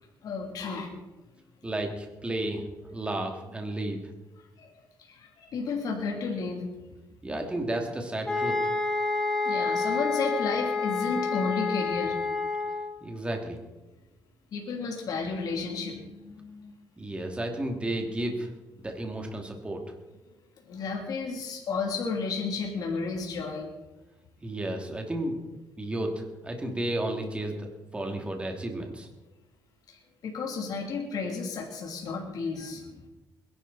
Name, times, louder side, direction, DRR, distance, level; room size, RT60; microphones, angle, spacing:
voice 1, 0.2-0.9 4.6-4.7 5.0-6.7 9.4-12.2 14.5-16.7 20.7-23.7 29.9-32.9, left 4 dB, 65° left, 0 dB, 3.0 m, -32 dB
voice 2, 1.6-2.6 2.9-4.0 7.2-8.5 13.0-13.6 17.0-18.5 18.8-19.8 24.4-25.4 25.8-29.1, right 1 dB, 15° right, 3 dB, 2.6 m, -32 dB
sound 1, 8.3-13.0, left 4 dB, 10° left, 2.7 m, -28 dB
21.5 x 11.5 x 4.2 m, 1.1 s
cardioid pair, 110°, 7 cm